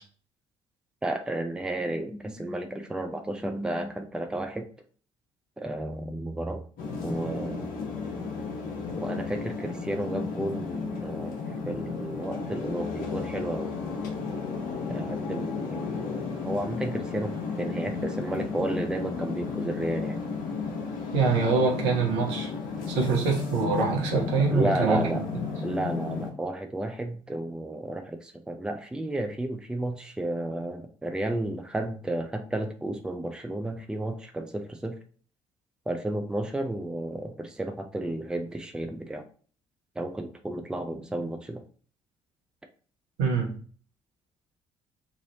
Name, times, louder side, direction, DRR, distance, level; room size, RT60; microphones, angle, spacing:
voice 1, 1.0-4.6 5.6-6.6 7.0-7.7 9.0-11.3 11.7-13.8 14.9-20.2 24.5-25.2 25.6-35.0 35.9-39.3 40.0-41.6, right 1 dB, 5° right, 5 dB, 0.5 m, -32 dB
sound 1, 6.8-26.3, left 4 dB, 65° left, 0.9 m, -33 dB
voice 2, 21.1-22.5 22.9-25.0 43.2-43.5, right 4 dB, 70° right, -1 dB, 0.9 m, -24 dB
3.1 x 2.6 x 2.8 m, 0.43 s
figure-of-eight pair, 45°, 16 cm